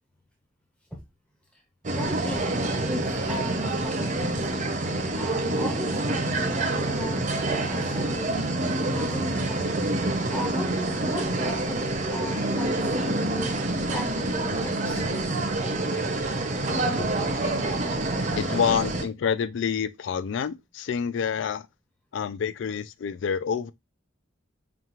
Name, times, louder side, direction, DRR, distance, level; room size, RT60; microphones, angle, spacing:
sound 1, 1.8-19.0, right 2 dB, 40° right, 0.6 m, -27 dB
voice 1, 2.0-2.6 2.8-4.6 5.1-8.4 8.9-9.8 10.3-13.5 13.9-15.1 17.0-17.1 17.5-17.6 18.1-18.4, left 1 dB, 5° left, 0.7 m, -37 dB
voice 2, 18.4-21.7 22.1-23.7, left 7 dB, 70° left, 0.3 m, -27 dB
5.1 x 2.4 x 2.9 m
head